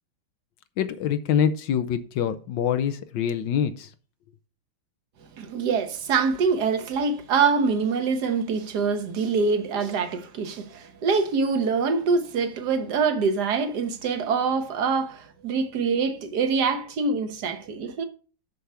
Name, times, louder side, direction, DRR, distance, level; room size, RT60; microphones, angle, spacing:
voice 1, 0.8-3.9, left 8 dB, 70° left, 1.2 m, -25 dB
voice 2, 5.4-18.0, right 5 dB, 55° right, 1.4 m, -25 dB
6.9 x 6.3 x 5.5 m
omnidirectional pair, 2.4 m